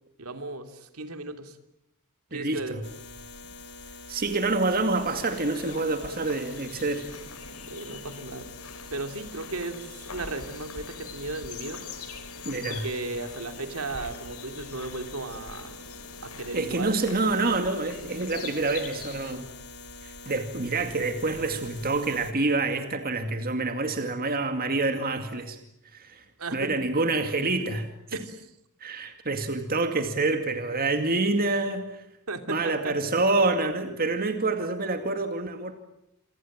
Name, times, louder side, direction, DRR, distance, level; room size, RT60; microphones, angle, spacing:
voice 1, 0.2-1.6 2.3-2.8 7.7-8.5 8.9-11.8 12.6-15.7 16.2-16.9 26.4-26.7 28.1-28.4 32.3-32.9, right 2 dB, 75° right, 7 dB, 3.0 m, -35 dB
voice 2, 2.3-2.8 4.1-7.0 12.4-12.9 16.5-19.4 20.0-25.6 25.9-26.2 26.5-27.9 28.8-32.0 32.5-35.7, right 3 dB, 40° right, 7 dB, 2.3 m, -27 dB
sound 1, 2.8-22.3, left 3 dB, 50° left, 2.5 m, -44 dB
sound 2, 4.6-19.3, left 6 dB, 80° left, 4.8 m, -45 dB
28.0 x 25.0 x 7.5 m, 0.82 s
head